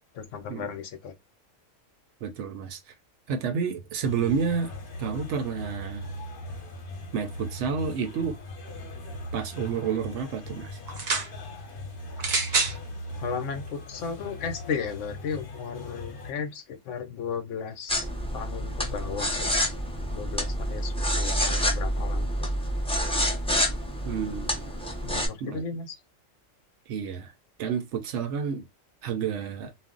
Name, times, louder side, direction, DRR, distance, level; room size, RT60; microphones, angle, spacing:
voice 1, 0.1-1.1 13.2-17.9 18.3-19.7 20.1-22.5 25.0-25.9, left 6 dB, 75° left, 0.9 m, -35 dB
voice 2, 2.2-2.9 3.3-4.7 5.0-6.1 7.1-8.4 9.3-10.8 24.1-24.7 25.4-25.6 26.9-27.3 27.6-28.7 29.0-29.7, right 6 dB, 70° right, 0.8 m, -30 dB
sound 1, 4.0-16.3, left 1 dB, 50° left, 0.9 m, -39 dB
sound 2, 10.9-11.3 12.2-12.8 13.7-13.8, right 4 dB, 45° right, 0.5 m, -26 dB
sound 3, 17.9-25.3, equal, 5° left, 0.4 m, -28 dB
2.5 x 2.1 x 3.7 m
omnidirectional pair, 1.3 m